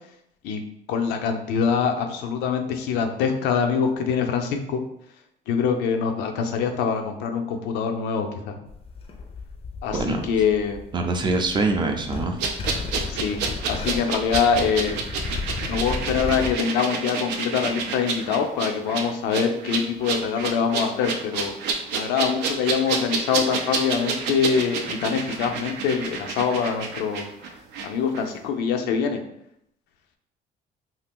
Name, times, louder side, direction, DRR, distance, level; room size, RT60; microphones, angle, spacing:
voice 1, 0.9-4.8 5.5-8.6 9.8-10.8 13.1-15.0 15.7-21.5 21.9-27.2 27.8-29.2, left 6 dB, 90° left, 5 dB, 0.5 m, -24 dB
sound 1, 8.7-16.5, left 4 dB, 35° left, 0.4 m, -34 dB
voice 2, 9.9-10.3 10.9-12.4, right 3 dB, 25° right, 5 dB, 0.4 m, -24 dB
sound 2, 12.4-27.9 28.1-28.3, right 5 dB, 85° right, 0.4 m, -29 dB
2.7 x 2.4 x 3.4 m, 0.76 s
cardioid pair, 110°, 17 cm